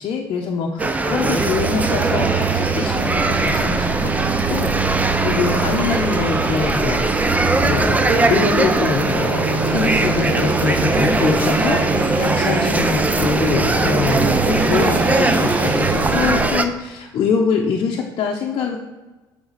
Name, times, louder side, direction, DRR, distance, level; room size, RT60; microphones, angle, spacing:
voice 1, 0.0-7.3 7.6-8.0 8.3-18.8, left 5 dB, 55° left, -1 dB, 0.7 m, -24 dB
sound 1, 0.8-16.6, right 2 dB, 15° right, 0.5 m, -21 dB
sound 2, 1.2-16.5, right 4 dB, 40° right, 0.8 m, -24 dB
7.9 x 3.5 x 4.1 m, 1.2 s
supercardioid pair, 85°, 10 cm